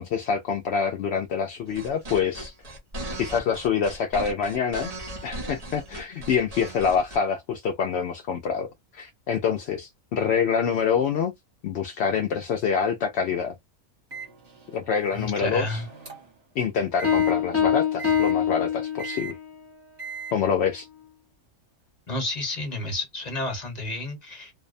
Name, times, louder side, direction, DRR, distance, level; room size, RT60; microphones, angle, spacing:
voice 1, 0.0-2.5 3.2-4.9 5.2-8.7 8.9-11.3 11.6-13.5 14.7-15.8 16.6-19.3 20.3-20.9, left 6 dB, 65° left, 0.7 m, -26 dB
sound 1, 1.7-7.2, right 1 dB, 35° right, 0.7 m, -37 dB
Microwave oven, 14.1-16.4 17.0-17.3 18.0-18.3 19.0-19.3 20.0-20.3, right 6 dB, 50° right, 1.3 m, -39 dB
voice 2, 15.1-15.9 22.1-24.5, left 2 dB, 30° left, 1.1 m, -31 dB
Piano, 17.0-19.4, left 8 dB, 15° left, 0.6 m, -24 dB
2.7 x 2.1 x 2.4 m
omnidirectional pair, 1.5 m